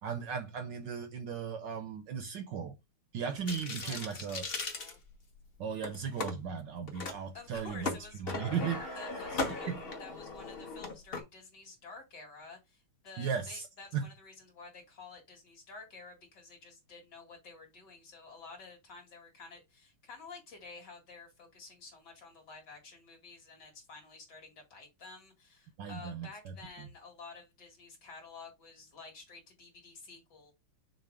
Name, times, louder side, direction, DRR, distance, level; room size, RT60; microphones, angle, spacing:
voice 1, 0.0-2.8 3.1-4.4 5.6-9.0 9.7-9.8 13.2-13.7 13.9-14.1 25.8-26.9, right 6 dB, 65° right, 1.2 m, -37 dB
sound 1, 3.5-5.4 5.8-6.3 6.9-7.2 7.5-11.2, left 3 dB, 30° left, 1.2 m, -38 dB
voice 2, 3.8-5.0 7.3-8.4 8.9-9.7 10.0-30.5, left 4 dB, 50° left, 2.9 m, -51 dB
6.6 x 2.9 x 4.9 m
omnidirectional pair, 2.4 m